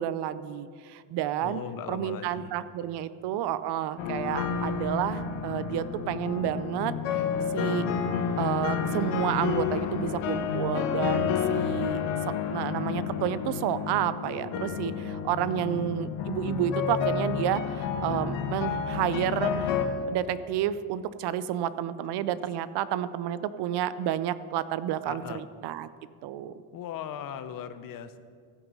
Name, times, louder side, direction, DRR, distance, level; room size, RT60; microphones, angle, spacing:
voice 1, 0.0-1.6 1.9-7.3 7.5-7.9 8.4-12.0 12.5-19.7 20.1-25.9 26.2-26.5, right 11 dB, 60° right, 15 dB, 0.6 m, -30 dB
voice 2, 1.4-2.5 15.6-16.0 25.0-25.5 26.7-28.2, left 8 dB, 45° left, 11 dB, 0.7 m, -39 dB
sound 1, 4.0-19.9, left 7 dB, 80° left, 1.3 m, -30 dB
15.5 x 6.0 x 5.4 m, 2.1 s
cardioid pair, 135°, 46 cm